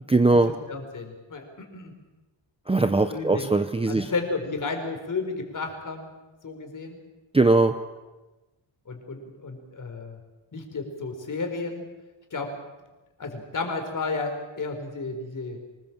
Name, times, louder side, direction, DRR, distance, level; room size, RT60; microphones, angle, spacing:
voice 1, 0.1-0.5 2.7-4.1 7.3-7.7, right 3 dB, 10° right, 8 dB, 0.8 m, -20 dB
voice 2, 0.7-1.9 3.1-3.5 3.9-6.1 6.4-7.0 8.9-10.2 10.5-11.8 12.3-12.5 13.2-15.6, left 3 dB, 40° left, 4 dB, 4.5 m, -32 dB
24.5 x 20.0 x 7.4 m, 1.1 s
wide cardioid pair, 145°, 47 cm